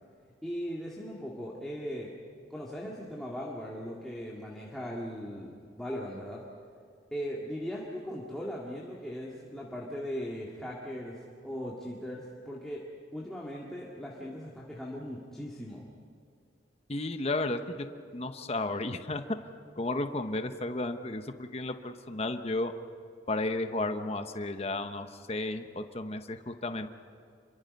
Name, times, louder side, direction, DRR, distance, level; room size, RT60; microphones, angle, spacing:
voice 1, 0.4-2.1 2.5-6.4 7.1-12.8 13.1-15.8, equal, ahead, -5 dB, 2.0 m, -39 dB
voice 2, 16.9-17.9 18.1-19.2 19.8-22.7 23.3-26.9, left 2 dB, 35° left, 8 dB, 0.9 m, -33 dB
27.5 x 23.5 x 5.4 m, 2.3 s
head